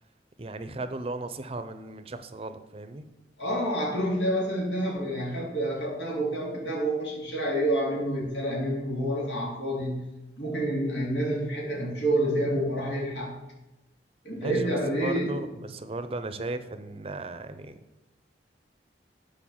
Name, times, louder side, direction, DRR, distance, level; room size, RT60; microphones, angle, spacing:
voice 1, 0.4-3.1 14.4-17.8, right 2 dB, 35° right, 10 dB, 0.6 m, -36 dB
voice 2, 3.4-10.0 10.4-13.3 14.2-15.3, right 1 dB, 90° left, -2 dB, 3.2 m, -28 dB
8.6 x 5.2 x 7.2 m, 0.99 s
head